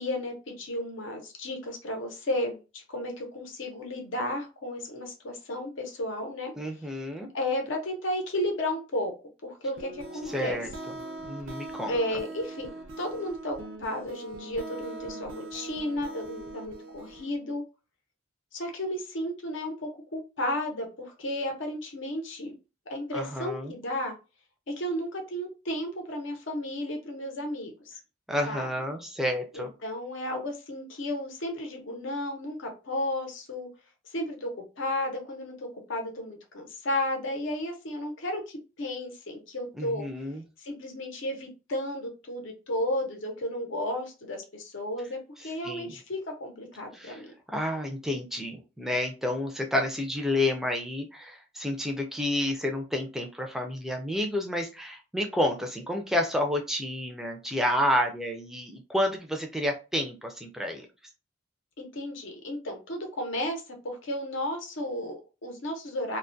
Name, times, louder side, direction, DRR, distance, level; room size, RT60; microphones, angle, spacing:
voice 1, 0.0-6.5 7.3-9.1 9.4-10.6 11.9-12.7 13.0-17.6 18.5-22.6 22.9-24.1 24.7-28.0 28.5-28.7 29.5-33.7 34.1-40.1 40.6-45.2 45.4-47.3 61.8-66.2, left 1 dB, 75° left, 3 dB, 0.7 m, -33 dB
voice 2, 6.6-7.3 10.3-10.7 11.2-11.9 23.1-23.7 28.3-29.7 39.8-40.4 45.6-45.9 46.9-47.2 47.5-60.9, left 1 dB, ahead, 3 dB, 0.3 m, -30 dB
sound 1, 9.8-17.3, right 2 dB, 75° right, 0.4 m, -41 dB
2.2 x 2.1 x 2.6 m, 0.30 s
head